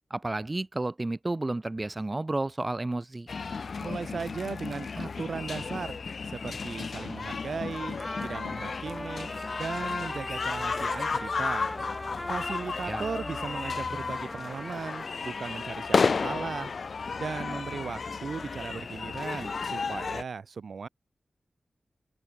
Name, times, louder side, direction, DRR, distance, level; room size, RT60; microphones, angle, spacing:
voice 1, 0.1-3.3 12.8-13.1, right 2 dB, 30° right, 1.1 m, -31 dB
sound 1, 3.3-20.2, left 5 dB, 70° left, 1.0 m, -33 dB
voice 2, 3.8-6.0 6.2-9.3 9.6-11.7 12.3-16.7 17.2-20.9, right 5 dB, 80° right, 2.2 m, -37 dB
Trumpet, 8.0-15.2, left 1 dB, 20° left, 4.2 m, -39 dB
open air
cardioid pair, 50°, 0 cm